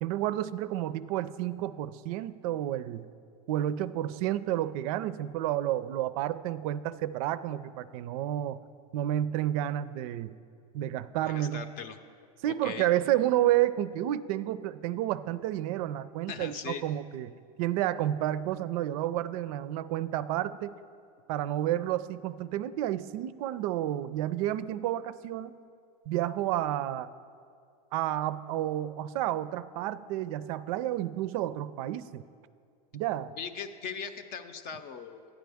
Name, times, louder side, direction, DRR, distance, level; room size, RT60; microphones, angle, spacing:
voice 1, 0.0-3.1 3.5-8.6 8.9-10.3 10.7-11.6 12.4-17.3 17.6-20.7 21.3-25.5 26.1-27.1 27.9-32.2 32.9-33.3, right 13 dB, 65° right, 15 dB, 0.4 m, -30 dB
voice 2, 11.2-12.0 12.5-12.9 16.3-16.8 33.4-35.3, left 6 dB, 50° left, 9 dB, 0.6 m, -39 dB
11.5 x 9.2 x 3.5 m, 2.3 s
supercardioid pair, 110°, 20 cm